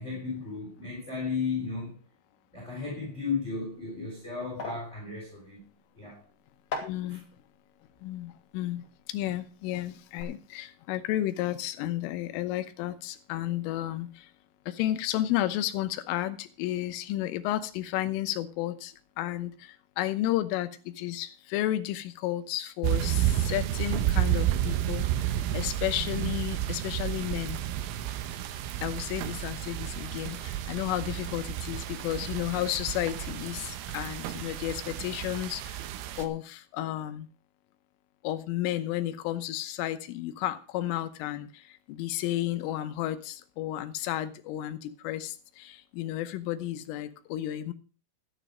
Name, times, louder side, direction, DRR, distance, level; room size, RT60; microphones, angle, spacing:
voice 1, 0.0-2.0 2.5-5.6 5.9-6.2 7.1-7.2, left 4 dB, 15° left, 4.1 m, -34 dB
sound 1, 3.5-9.7 9.9-10.2, left 4 dB, 35° left, 2.7 m, -43 dB
voice 2, 6.8-7.3 8.0-14.3 14.7-27.6 28.8-35.9 36.1-37.3 38.2-47.7, left 14 dB, 80° left, 3.5 m, -32 dB
sound 2, 22.8-36.3, right 12 dB, 80° right, 3.5 m, -31 dB
12.5 x 10.5 x 5.0 m
omnidirectional pair, 5.8 m